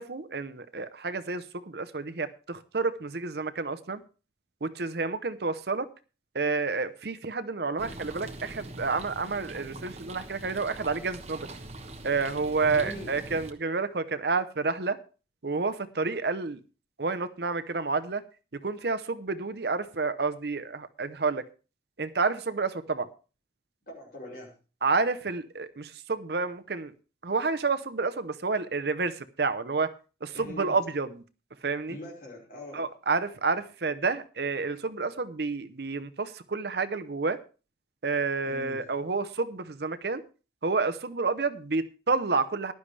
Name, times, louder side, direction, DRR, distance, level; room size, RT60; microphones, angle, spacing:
voice 1, 0.0-4.0 4.6-5.9 6.3-11.5 12.0-15.0 15.4-16.6 17.0-18.2 18.5-21.4 22.0-23.1 24.8-26.9 27.2-29.9 30.2-31.2 31.6-32.0 32.7-37.4 38.0-40.2 40.6-42.7, right 4 dB, 60° right, 12 dB, 0.8 m, -29 dB
sound 1, 7.8-13.5, right 2 dB, 35° right, 1.3 m, -43 dB
voice 2, 12.6-13.2 23.9-24.6 30.3-30.8 31.9-32.9 38.4-38.8, equal, 50° left, -1 dB, 5.1 m, -42 dB
15.0 x 11.5 x 3.3 m, 0.35 s
head